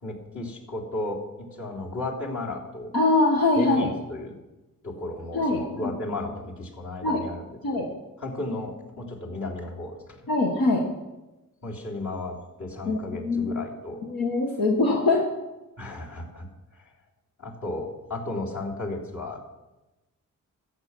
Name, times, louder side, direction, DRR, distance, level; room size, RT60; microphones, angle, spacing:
voice 1, 0.0-2.9 3.5-4.3 4.8-10.3 11.6-14.0 15.8-16.5 16.7-16.9 17.4-19.4, left 2 dB, 60° left, -3 dB, 3.4 m, -34 dB
voice 2, 2.9-3.9 5.3-5.6 7.0-7.2 7.6-7.8 10.3-10.8 12.8-13.5 14.0-15.2, left 2 dB, 80° left, -1 dB, 1.7 m, -23 dB
14.0 x 8.9 x 6.3 m, 1.1 s
cardioid pair, 80°, 34 cm